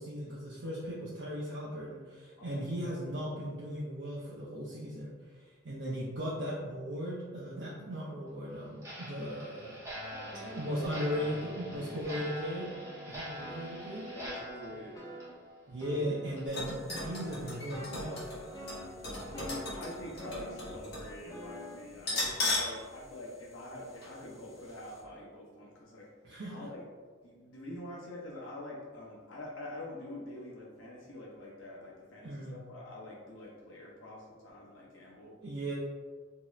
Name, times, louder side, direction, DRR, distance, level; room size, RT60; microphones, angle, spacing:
voice 1, 0.0-9.8 10.5-12.7 13.1-14.1 15.7-18.3 26.2-26.7 32.2-32.6 35.4-35.7, equal, 60° right, -8 dB, 0.5 m, -37 dB
voice 2, 2.4-3.0 9.2-9.4 10.0-10.8 11.7-12.0 14.1-15.0 19.2-26.1 26.5-26.9 27.2-35.3, left 1 dB, 85° left, -3 dB, 0.8 m, -46 dB
Clock, 8.8-16.0 16.3-16.4 16.9-17.0 17.5-17.6 18.1-18.2 18.7-18.8 19.3-19.4, equal, 15° right, 0.7 m, -45 dB
sound 1, 9.9-12.2 12.5-15.4 15.8-16.6 16.9-20.9 21.3-21.8, left 1 dB, 20° left, 0.5 m, -47 dB
sound 2, 16.5-21.1 21.4-21.5 22.0-22.8 23.1-23.2 24.0-24.2 24.6-24.7, left 2 dB, 55° left, 1.2 m, -36 dB
2.7 x 2.4 x 3.0 m, 1.5 s
head